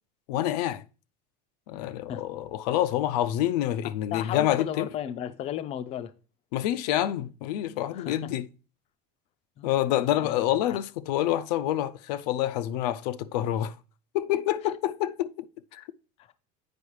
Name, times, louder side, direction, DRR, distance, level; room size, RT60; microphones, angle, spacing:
voice 1, 0.3-0.8 1.7-4.9 6.5-8.5 9.6-13.8 14.1-15.5 15.7-15.8, left 12 dB, 90° left, 0.4 m, -27 dB
voice 2, 3.8-6.1 7.9-8.3 9.6-10.4 10.7-10.8 16.2-16.3, left 10 dB, 30° left, 0.4 m, -35 dB
8.4 x 4.6 x 3.1 m
cardioid pair, 150°, 20 cm